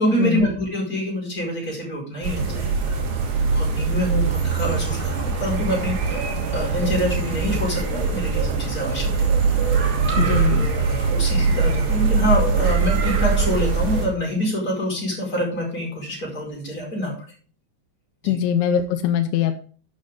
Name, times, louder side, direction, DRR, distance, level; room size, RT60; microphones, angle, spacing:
voice 1, 0.0-3.0 3.3-9.2 10.1-17.1 18.2-18.4, equal, 20° left, -3 dB, 5.0 m, -26 dB
sound 1, 2.2-14.1, right 4 dB, 70° right, 4.3 m, -22 dB
voice 2, 10.2-10.7 18.3-19.6, left 9 dB, 85° left, 7 dB, 3.1 m, -22 dB
11.0 x 9.0 x 3.7 m, 0.40 s
omnidirectional pair, 5.3 m